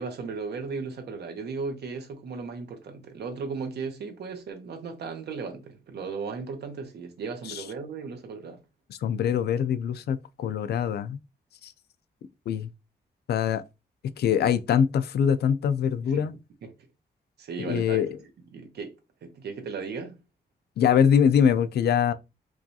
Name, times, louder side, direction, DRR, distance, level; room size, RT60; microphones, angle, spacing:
voice 1, 0.0-8.6 16.1-16.7 17.4-18.9 19.2-20.2, right 5 dB, 80° right, 0.9 m, -36 dB
voice 2, 8.9-11.2 11.6-11.7 12.5-12.7 13.3-13.6 14.2-16.3 17.6-18.1 20.8-22.1, left 8 dB, 80° left, 0.4 m, -23 dB
4.7 x 2.3 x 2.7 m
wide cardioid pair, 145°, 17 cm